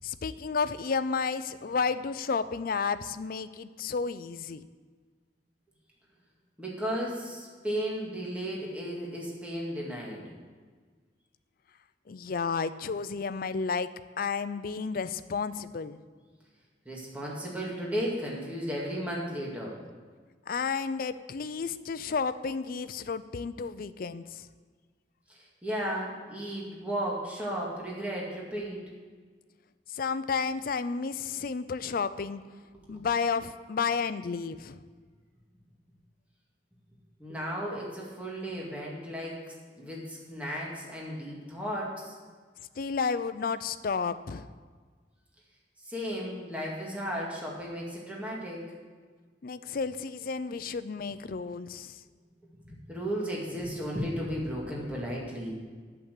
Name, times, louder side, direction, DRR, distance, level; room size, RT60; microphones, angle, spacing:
voice 1, 0.0-4.6 12.1-16.0 20.5-24.5 29.9-32.4 32.9-34.8 42.8-44.5 49.4-52.0, left 5 dB, 55° left, 13 dB, 0.4 m, -32 dB
voice 2, 6.6-10.3 16.9-19.8 25.3-28.9 32.9-33.0 37.2-42.1 45.8-48.7 52.6-55.5, equal, 10° right, -4 dB, 2.1 m, -35 dB
8.4 x 7.2 x 8.2 m, 1.5 s
head